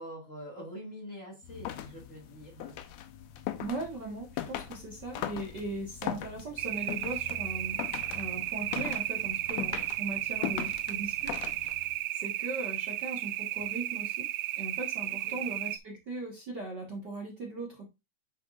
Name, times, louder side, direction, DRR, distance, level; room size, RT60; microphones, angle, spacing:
voice 1, 0.0-2.8 15.0-15.5, equal, 30° left, 2.0 m, -45 dB
sound 1, 1.4-12.0, left 11 dB, 70° left, 1.8 m, -40 dB
voice 2, 3.6-7.8 8.1-11.5 12.1-14.3 14.6-17.9, right 2 dB, 45° right, 1.6 m, -39 dB
sound 2, 6.6-15.8, right 15 dB, 80° right, 1.6 m, -34 dB
9.3 x 6.4 x 2.5 m
omnidirectional pair, 3.5 m